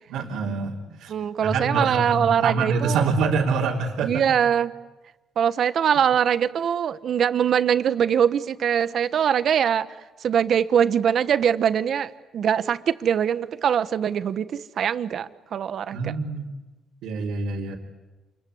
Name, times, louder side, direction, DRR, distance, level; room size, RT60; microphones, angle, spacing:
voice 1, 0.1-1.1 1.4-4.2 15.9-16.5 17.0-17.8, right 4 dB, 90° right, -4 dB, 3.2 m, -26 dB
voice 2, 1.1-3.1 4.0-4.7 5.4-9.9 10.2-16.1, right 8 dB, 60° right, 13 dB, 1.2 m, -22 dB
28.0 x 22.0 x 9.7 m, 1.1 s
cardioid pair, 90°, 0 cm